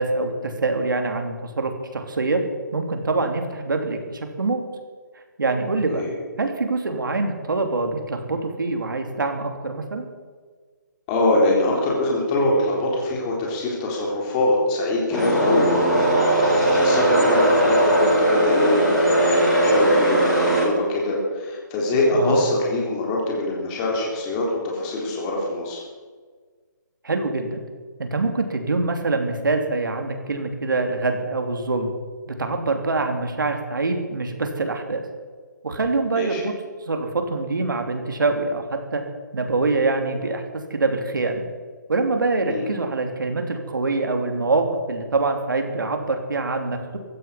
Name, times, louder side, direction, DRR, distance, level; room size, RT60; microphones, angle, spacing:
voice 1, 0.0-2.4 2.7-4.6 5.4-6.1 6.4-10.1 22.1-22.3 27.0-27.6 28.0-31.9 32.3-35.0 35.6-36.5 36.8-39.0 39.3-41.4 41.9-47.0, right 3 dB, 85° right, 5 dB, 3.1 m, -24 dB
voice 2, 11.1-25.8 36.2-36.4 42.4-42.7, left 2 dB, 20° left, -2 dB, 3.7 m, -23 dB
sound 1, 15.1-20.6, right 1 dB, ahead, 6.0 m, -19 dB
16.0 x 14.0 x 5.8 m, 1.5 s
hypercardioid pair, 170°, 10 cm